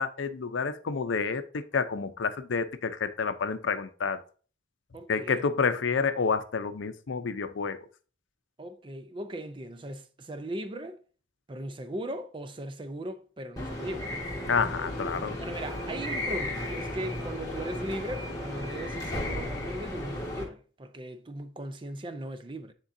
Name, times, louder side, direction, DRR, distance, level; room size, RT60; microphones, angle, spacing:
voice 1, 0.0-4.2 5.1-7.8 14.5-15.4, left 5 dB, 85° left, 0.5 m, -29 dB
voice 2, 4.9-5.5 8.6-11.0 11.5-14.1 15.4-22.7, right 1 dB, 25° right, 0.5 m, -38 dB
sound 1, 13.6-20.4, left 1 dB, 20° left, 1.4 m, -35 dB
9.8 x 3.7 x 2.6 m
head